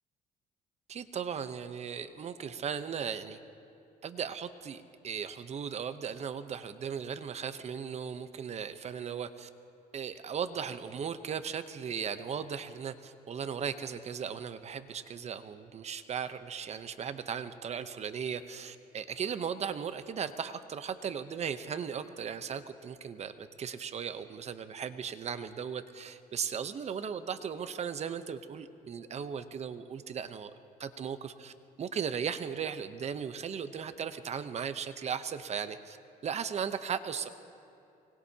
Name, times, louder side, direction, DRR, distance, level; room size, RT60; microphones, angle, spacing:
voice 1, 0.9-3.4 4.0-9.5 9.9-30.5 30.8-31.5 31.8-36.0 36.2-37.3, right 7 dB, 40° right, 11 dB, 0.8 m, -37 dB
24.5 x 20.0 x 2.8 m, 2.7 s
cardioid pair, 110°, 17 cm